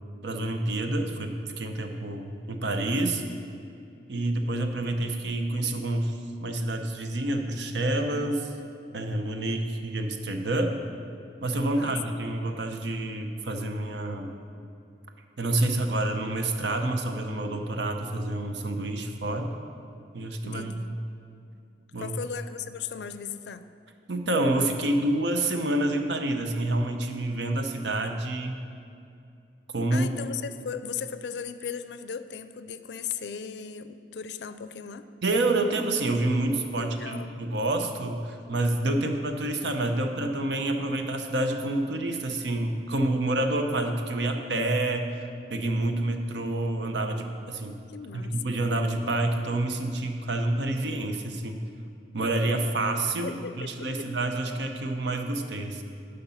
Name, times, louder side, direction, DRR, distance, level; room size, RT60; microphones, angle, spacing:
voice 1, 0.2-3.2 4.1-8.5 8.9-10.8 11.4-14.3 15.4-19.5 20.1-20.8 21.9-22.2 24.1-28.6 29.7-30.1 35.2-45.2 45.5-47.8 48.1-51.6 52.1-55.8, right 2 dB, 75° right, 5 dB, 0.8 m, -28 dB
voice 2, 11.7-12.2 20.4-21.0 22.0-23.7 29.9-35.1 36.8-37.3 47.9-48.6 53.2-53.7 54.0-54.1, left 7 dB, 70° left, 12 dB, 0.4 m, -37 dB
11.0 x 5.3 x 5.6 m, 2.5 s
head